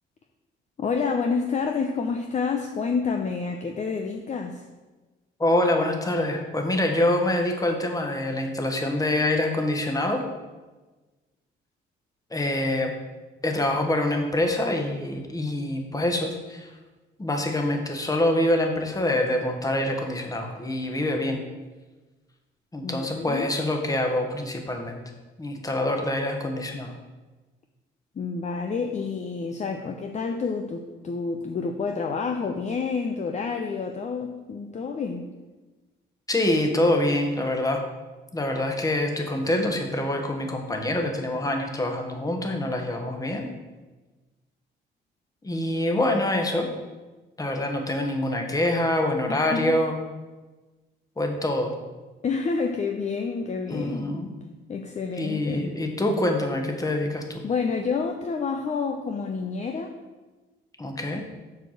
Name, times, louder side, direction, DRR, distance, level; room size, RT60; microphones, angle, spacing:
voice 1, 0.8-4.6 22.8-23.5 28.2-35.2 49.3-49.8 52.2-54.2 54.7-55.7 57.4-59.9, left 5 dB, 35° left, 4 dB, 0.6 m, -29 dB
voice 2, 5.4-10.2 12.3-12.9 13.4-16.7 17.2-21.4 22.7-25.0 25.4-26.9 36.3-37.8 38.3-43.5 45.4-46.7 47.4-50.0 51.2-51.7 53.7-54.3 55.2-57.4 60.8-61.2, left 1 dB, 20° left, 4 dB, 1.3 m, -25 dB
6.7 x 4.7 x 6.4 m, 1.2 s
cardioid pair, 90°, 20 cm